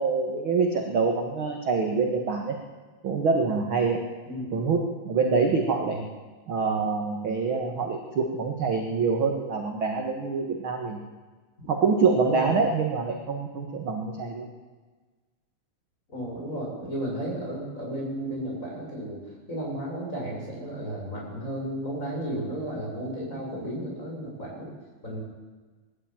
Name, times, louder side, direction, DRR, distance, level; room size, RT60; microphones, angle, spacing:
voice 1, 0.0-2.6 3.0-4.0 4.5-6.0 6.5-11.0 11.7-14.5, right 4 dB, 45° right, 2 dB, 1.9 m, -25 dB
voice 2, 12.2-12.6 16.1-19.2 19.5-24.7 25.0-25.2, right 1 dB, 20° left, -2 dB, 7.2 m, -33 dB
20.5 x 14.5 x 9.1 m, 1.3 s
omnidirectional pair, 4.3 m